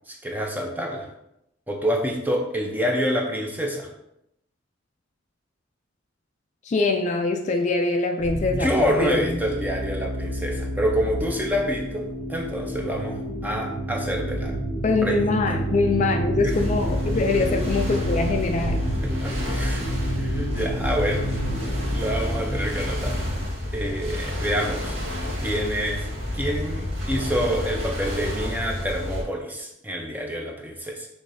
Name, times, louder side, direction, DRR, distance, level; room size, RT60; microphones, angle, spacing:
voice 1, 0.1-1.1 1.7-3.9 8.5-14.5 15.0-15.3 16.4-16.5 19.0-19.9 20.2-21.3 21.7-23.2 23.7-25.0 25.4-26.1 26.3-31.1, equal, 10° right, 0 dB, 0.6 m, -27 dB
voice 2, 6.6-9.4 14.8-18.8, left 3 dB, 40° left, 4 dB, 0.3 m, -23 dB
sound 1, 8.2-23.4, equal, 45° right, 1.2 m, -29 dB
sound 2, 16.5-29.2, left 1 dB, 85° right, 1.6 m, -30 dB
6.3 x 3.2 x 2.7 m, 0.81 s
head